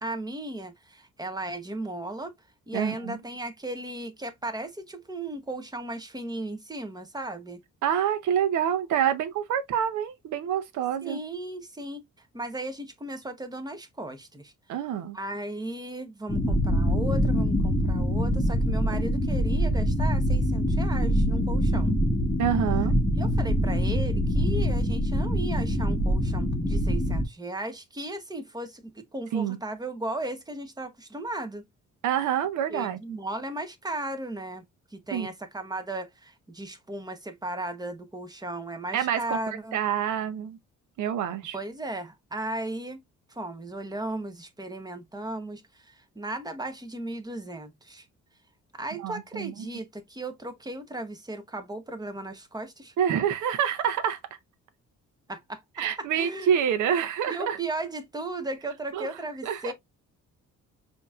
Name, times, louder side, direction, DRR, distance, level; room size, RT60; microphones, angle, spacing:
voice 1, 0.0-2.3 2.7-7.6 11.0-14.5 15.1-21.9 23.1-31.6 32.7-34.6 34.9-39.8 41.5-43.0 43.3-48.1 48.7-52.9 55.3-55.8 56.1-56.5 57.3-59.7, right 1 dB, 15° right, 1.0 m, -36 dB
voice 2, 2.7-3.2 7.8-11.2 14.7-15.2 22.4-22.9 29.3-29.6 32.0-33.0 35.1-35.3 38.9-39.4 39.7-40.6 41.0-41.6 49.0-49.5 53.0-54.2 55.8-57.6 58.9-59.1 59.4-59.7, right 9 dB, 75° right, 0.8 m, -27 dB
sound 1, 16.3-27.2, equal, 10° left, 1.2 m, -24 dB
5.2 x 2.8 x 2.4 m
cardioid pair, 90°, 30 cm